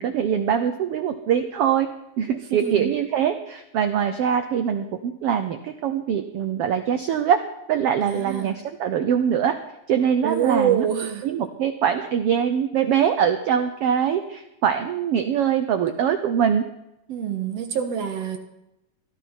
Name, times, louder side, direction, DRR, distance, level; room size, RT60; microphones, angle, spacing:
voice 1, 0.0-1.9 2.2-7.4 7.7-9.6 9.9-10.8 11.2-16.6, right 8 dB, 80° right, 8 dB, 1.3 m, -23 dB
voice 2, 2.5-2.9 8.0-8.6 10.2-11.3 17.1-18.4, right 8 dB, 60° right, 6 dB, 2.0 m, -25 dB
17.5 x 12.0 x 4.4 m, 0.88 s
omnidirectional pair, 3.7 m